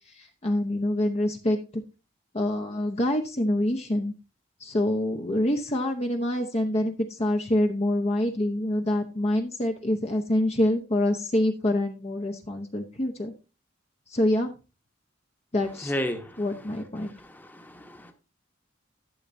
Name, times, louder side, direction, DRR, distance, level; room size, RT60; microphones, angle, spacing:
voice 1, 0.1-1.8 2.3-4.1 4.6-13.3 14.1-14.5 15.5-15.9 16.4-17.1, left 1 dB, 35° left, 4 dB, 0.9 m, -26 dB
voice 2, 15.8-16.4 17.0-18.1, equal, 10° left, 5 dB, 1.1 m, -33 dB
12.0 x 7.2 x 2.7 m, 0.30 s
head